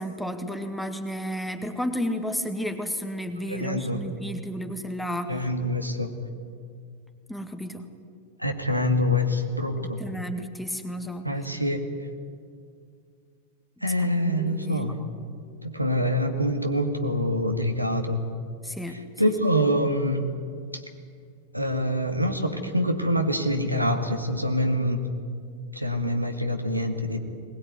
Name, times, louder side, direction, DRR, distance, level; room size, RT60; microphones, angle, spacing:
voice 1, 0.0-5.5 7.3-7.9 9.8-11.3 14.3-15.0 18.6-19.3, equal, 5° left, 6 dB, 2.0 m, -32 dB
voice 2, 3.5-4.0 5.3-6.1 8.4-10.0 11.2-11.9 13.8-15.0 15.6-18.2 19.2-20.3 20.7-20.8 21.5-25.0 25.7-27.2, equal, 90° right, 4 dB, 2.0 m, -25 dB
21.0 x 20.0 x 9.5 m, 2.2 s
figure-of-eight pair, 90°, 0 cm